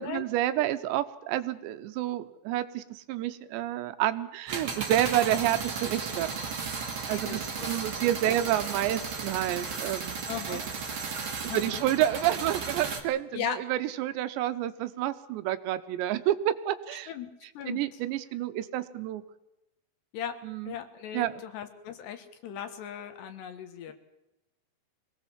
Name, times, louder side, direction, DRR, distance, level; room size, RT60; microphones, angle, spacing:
voice 1, 0.0-6.3 7.1-10.2 10.5-10.7 11.0-11.2 11.5-17.1 17.7-19.2 20.4-20.8 21.1-21.4, right 13 dB, 85° right, 11 dB, 3.1 m, -29 dB
sound 1, 4.5-13.0, right 5 dB, 40° right, 2.1 m, -35 dB
voice 2, 7.1-7.8 8.3-8.4 10.3-10.6 11.5-11.8 13.3-13.6 17.1-17.3 17.6-17.8 20.1-20.4 20.7-23.9, left 9 dB, 75° left, 9 dB, 3.6 m, -37 dB
24.0 x 18.0 x 7.3 m, 0.94 s
omnidirectional pair, 5.0 m